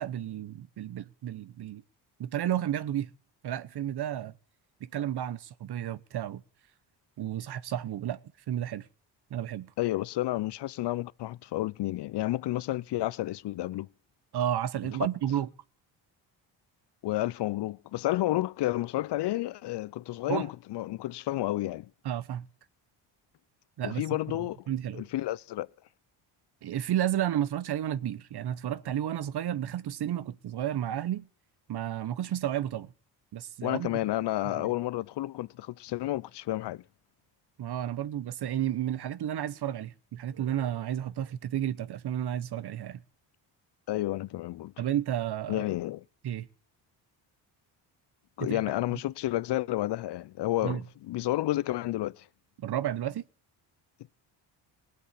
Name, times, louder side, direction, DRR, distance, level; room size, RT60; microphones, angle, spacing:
voice 1, 0.0-1.8 2.2-3.1 3.4-4.3 4.8-6.4 7.2-8.2 8.5-8.8 9.3-9.7 14.3-15.5 20.3-20.5 22.0-22.4 23.8-24.0 24.7-25.0 26.6-31.3 31.7-32.9 33.3-33.9 34.4-34.7 37.6-43.0 44.8-45.7 46.2-46.5 48.4-48.6 48.9-49.0 50.6-50.8 52.6-53.2, right 11 dB, 55° right, 1.1 m, -32 dB
voice 2, 9.8-13.9 15.0-15.1 17.0-21.9 23.8-24.6 24.9-25.7 33.6-36.8 43.9-44.7 45.5-46.0 48.4-52.2, left 15 dB, 60° left, 0.7 m, -31 dB
19.5 x 8.1 x 8.3 m
cardioid pair, 85°, 46 cm